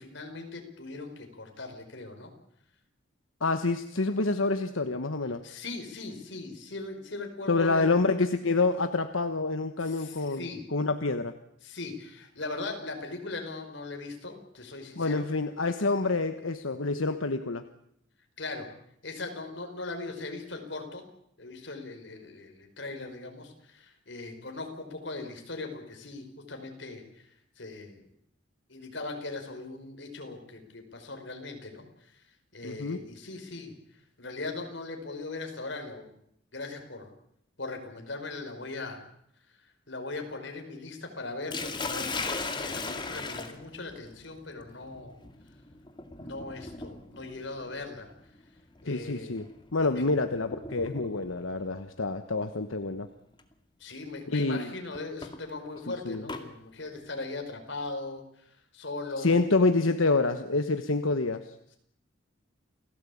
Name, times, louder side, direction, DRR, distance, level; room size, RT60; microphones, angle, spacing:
voice 1, 0.0-2.3 5.4-8.0 9.8-10.7 11.6-15.3 18.4-18.7 19.0-21.0 21.4-27.3 27.6-28.1 28.7-32.2 32.5-33.7 34.2-36.1 36.5-37.1 37.6-39.0 39.6-45.1 46.2-48.1 48.8-49.4 49.8-50.1 53.8-59.4, left 3 dB, 60° left, 4 dB, 5.3 m, -39 dB
voice 2, 3.4-5.4 7.5-11.3 15.0-17.6 32.6-33.0 48.9-53.1 54.2-54.7 56.0-56.2 59.2-61.4, left 3 dB, 90° left, 8 dB, 1.3 m, -27 dB
Sink (filling or washing), 41.5-51.4 52.6-52.9 53.4-53.5 54.9-56.5, left 3 dB, 25° left, 2.2 m, -38 dB
29.0 x 17.0 x 8.6 m, 0.75 s
head